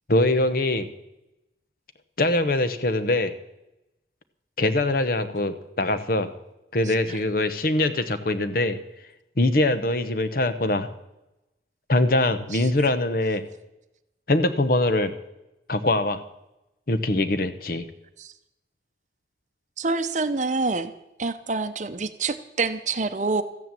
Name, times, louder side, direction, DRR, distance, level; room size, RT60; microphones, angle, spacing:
voice 1, 0.1-0.9 2.2-3.3 4.6-6.3 6.7-8.8 9.4-10.9 11.9-13.4 14.3-15.1 15.7-16.2 16.9-17.8, left 2 dB, 50° left, 10 dB, 0.9 m, -23 dB
voice 2, 19.8-20.9 21.2-23.4, right 3 dB, 40° right, 10 dB, 0.7 m, -26 dB
14.0 x 10.0 x 7.5 m, 0.92 s
head